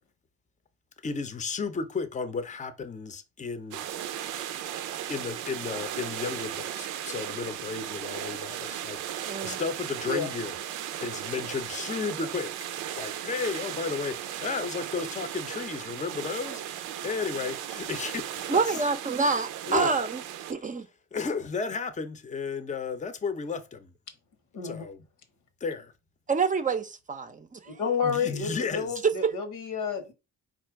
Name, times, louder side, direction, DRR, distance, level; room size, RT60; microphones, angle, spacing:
voice 1, 1.0-3.8 5.1-10.6 11.0-12.5 13.0-16.6 17.0-18.6 19.7-19.9 21.1-23.8 24.6-25.0 25.6-25.9 28.0-29.0, left 5 dB, 25° left, 0.6 m, -33 dB
sound 1, 3.7-20.5, right 11 dB, 85° right, 0.5 m, -36 dB
voice 2, 9.3-9.6 18.5-20.2 20.5-20.9 26.3-27.8 29.2-29.3, right 4 dB, 25° right, 0.5 m, -27 dB
voice 3, 24.5-24.8 27.7-30.1, left 6 dB, 85° left, 1.1 m, -30 dB
4.2 x 2.5 x 4.5 m
cardioid pair, 90°, 30 cm